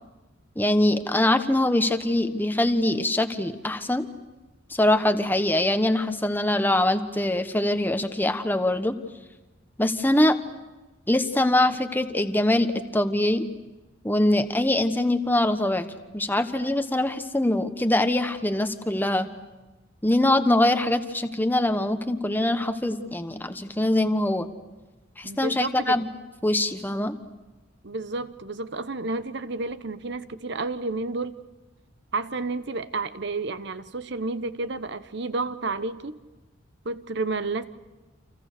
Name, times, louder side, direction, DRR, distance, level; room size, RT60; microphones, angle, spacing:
voice 1, 0.6-4.1 4.7-9.0 9.8-10.4 11.1-12.7 12.9-13.4 14.0-15.9 16.1-19.3 20.0-24.5 25.2-26.1 26.4-27.1, left 1 dB, 10° left, 8 dB, 1.2 m, -23 dB
voice 2, 25.2-26.0 27.8-31.4 32.1-36.2 36.8-37.6, right 3 dB, 60° right, 13 dB, 1.0 m, -31 dB
29.5 x 27.0 x 6.8 m, 1.1 s
head